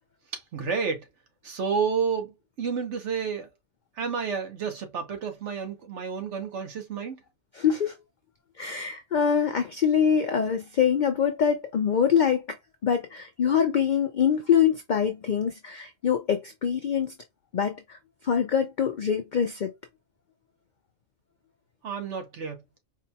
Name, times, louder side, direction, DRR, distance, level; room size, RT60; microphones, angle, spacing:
voice 1, 0.3-1.1 1.4-3.5 4.0-7.2 21.8-22.6, right 6 dB, 60° right, 1.1 m, -30 dB
voice 2, 7.5-7.9 8.6-12.6 12.8-17.1 17.5-18.0 18.2-19.7, left 7 dB, 80° left, 0.4 m, -24 dB
4.5 x 2.2 x 2.7 m
omnidirectional pair, 1.4 m